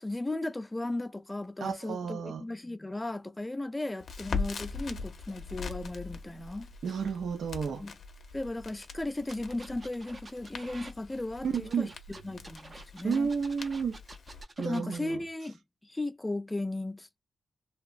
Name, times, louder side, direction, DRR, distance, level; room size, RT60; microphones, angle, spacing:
voice 1, 0.0-6.7 7.8-7.9 8.3-13.3 14.6-17.2, left 2 dB, 15° left, 0.4 m, -36 dB
voice 2, 1.6-2.4 6.8-7.8 11.4-11.9 13.0-14.0 14.6-15.2, right 6 dB, 85° right, 0.5 m, -31 dB
Crackle, 4.0-14.4, left 4 dB, 70° left, 0.5 m, -41 dB
sound 1, 9.2-10.9 11.5-15.0, right 2 dB, 40° right, 0.6 m, -49 dB
2.9 x 2.0 x 2.4 m
cardioid pair, 95°, 0 cm